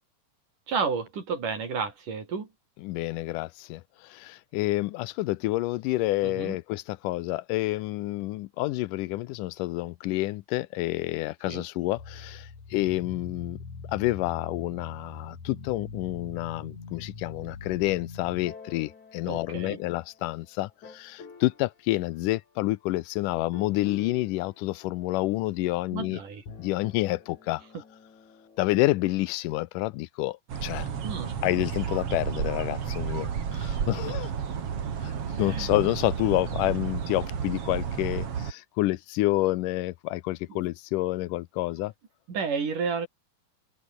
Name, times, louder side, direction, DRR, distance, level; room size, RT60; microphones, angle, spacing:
voice 1, 0.7-2.5 6.2-6.6 11.4-11.7 19.3-19.8 25.9-26.4 31.0-31.3 33.5-34.1 35.4-35.7 40.5-40.7 42.3-43.1, right 5 dB, 75° right, 6.1 m, -32 dB
voice 2, 2.8-13.6 13.9-26.2 26.6-27.6 28.6-30.9 31.4-34.3 35.0-35.1 35.4-41.9, left 18 dB, 90° left, 2.2 m, -29 dB
sound 1, 12.0-20.3 20.8-21.7 23.5-25.2 26.3-28.9, left 5 dB, 65° left, 6.0 m, -44 dB
Ambience Nature, 30.5-38.5, right 7 dB, 50° right, 2.9 m, -32 dB
open air
omnidirectional pair, 3.7 m